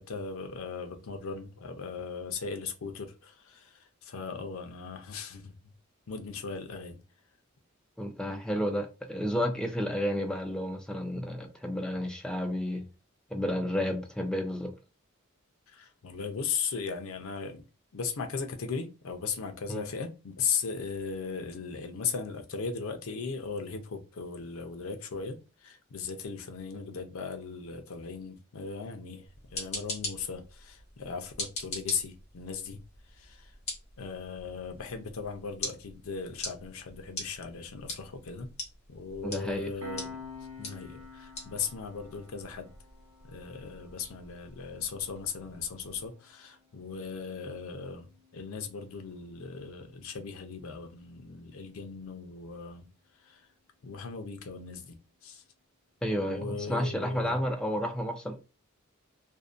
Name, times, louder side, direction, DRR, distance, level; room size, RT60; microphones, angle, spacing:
voice 1, 0.0-5.5 6.1-7.0 15.7-17.7 17.9-29.2 29.5-32.8 33.1-33.5 34.0-38.5 38.9-40.1 40.6-42.7 43.2-52.9 53.3-53.4 53.8-55.0 55.2-55.4 56.3-57.4, left 5 dB, 75° left, 0.5 m, -37 dB
voice 2, 8.0-12.9 13.3-14.7 19.7-19.9 39.2-39.7 56.0-58.4, equal, 5° left, 0.4 m, -31 dB
sound 1, 29.3-46.1, left 2 dB, 30° left, 1.0 m, -43 dB
Piano, 39.8-50.9, left 4 dB, 85° right, 0.7 m, -51 dB
2.6 x 2.1 x 2.4 m
head